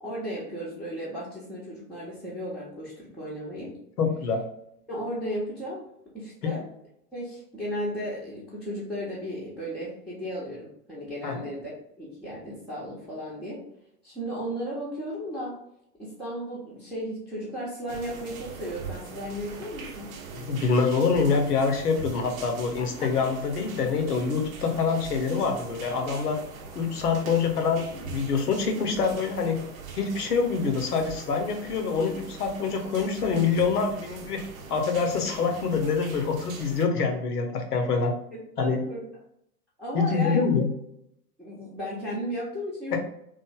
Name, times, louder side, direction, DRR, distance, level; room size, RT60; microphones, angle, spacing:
voice 1, 0.0-3.7 4.9-5.8 6.1-6.7 7.1-11.7 12.0-13.6 14.0-15.6 16.0-20.1 23.0-23.1 38.6-39.0 39.8-40.4 41.4-43.0, equal, ahead, -10 dB, 0.6 m, -35 dB
voice 2, 4.0-4.4 6.4-6.5 11.2-11.4 20.5-26.4 26.7-29.6 30.0-34.4 34.7-38.1 38.6-38.8 39.9-40.7 42.9-43.0, left 5 dB, 75° left, 4 dB, 0.8 m, -25 dB
sound 1, 17.9-36.9, right 5 dB, 60° right, 0.7 m, -42 dB
3.1 x 2.4 x 2.3 m, 0.76 s
figure-of-eight pair, 100°, 47 cm